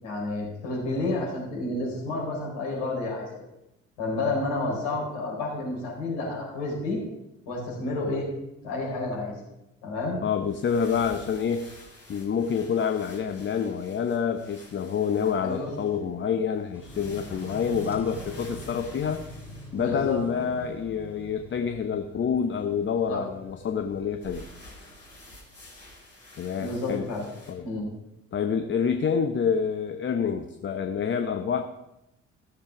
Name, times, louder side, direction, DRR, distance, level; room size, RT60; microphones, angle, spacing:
voice 1, 0.0-3.4 4.0-7.0 7.5-8.3 8.6-9.4 9.8-10.2 15.4-15.8 19.7-20.2 23.1-23.2 26.6-27.3 27.6-27.9, left 2 dB, 65° left, -3 dB, 4.6 m, -30 dB
voice 2, 10.2-11.7 12.1-19.2 19.7-24.4 26.4-27.1 27.5-27.7 28.3-31.6, left 7 dB, 30° left, 7 dB, 0.8 m, -27 dB
sound 1, 10.3-20.4 24.2-27.5, left 1 dB, 90° left, 3.3 m, -50 dB
sound 2, 16.7-24.4, left 1 dB, 5° right, 2.7 m, -44 dB
16.0 x 6.7 x 6.1 m, 0.90 s
figure-of-eight pair, 50°, 38 cm